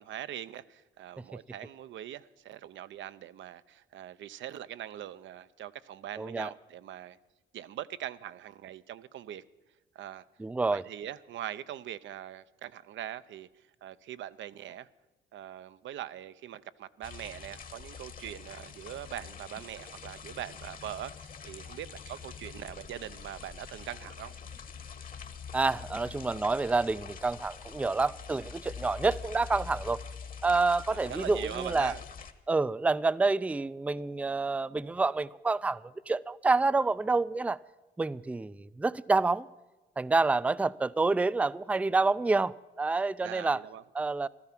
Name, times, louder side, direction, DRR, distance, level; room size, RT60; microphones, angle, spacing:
voice 1, 0.0-7.2 7.5-9.4 9.9-10.2 10.7-14.9 15.3-24.3 30.9-32.0 43.2-43.8, right 11 dB, 75° right, 0.7 m, -42 dB
voice 2, 6.2-6.5 10.4-10.8 25.5-30.0 30.4-31.9 32.5-37.6 38.0-39.5 40.0-43.6 43.9-44.3, right 3 dB, 5° right, 0.4 m, -28 dB
sound 1, 17.0-32.3, left 6 dB, 45° left, 1.3 m, -45 dB
14.5 x 13.0 x 5.9 m
cardioid pair, 90°, 20 cm